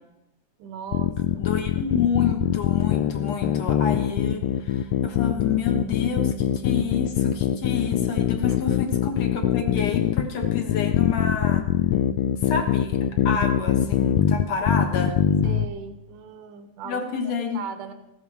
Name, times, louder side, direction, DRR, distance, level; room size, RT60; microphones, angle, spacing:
voice 1, 0.6-1.5 8.5-8.6 15.4-17.0 17.2-17.9, right 7 dB, 80° right, 8 dB, 2.6 m, -38 dB
sound 1, 0.9-15.7, left 11 dB, 85° left, 1.5 m, -23 dB
voice 2, 1.4-11.6 12.4-15.1 16.8-17.6, left 6 dB, 65° left, 3 dB, 2.4 m, -29 dB
14.5 x 13.0 x 4.7 m, 0.87 s
omnidirectional pair, 3.6 m